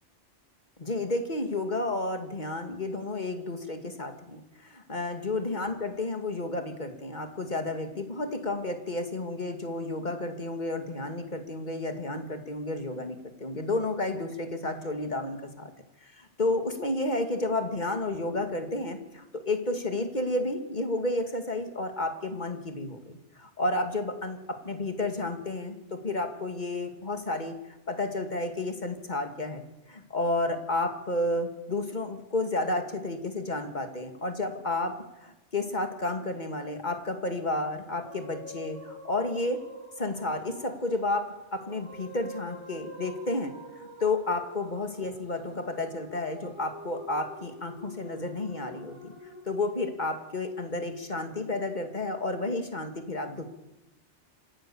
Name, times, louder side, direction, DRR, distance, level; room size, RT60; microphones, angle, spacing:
voice 1, 0.8-15.7 16.0-27.5 27.9-34.9 35.2-39.6 40.0-49.1 49.4-53.4, left 2 dB, 40° left, 6 dB, 2.5 m, -31 dB
sound 1, 37.7-49.4, equal, 90° right, 6.7 m, -47 dB
26.5 x 15.5 x 7.2 m, 0.95 s
omnidirectional pair, 1.2 m